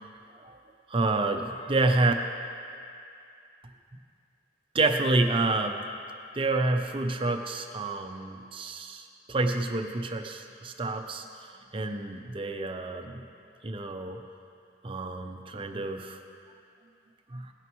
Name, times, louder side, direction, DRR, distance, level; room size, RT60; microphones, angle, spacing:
voice 1, 0.9-2.1 4.7-5.8 6.3-13.2 13.6-14.2 14.8-16.2 17.3-17.5, right 2 dB, 30° right, 5 dB, 0.6 m, -28 dB
17.0 x 9.3 x 3.0 m, 2.4 s
head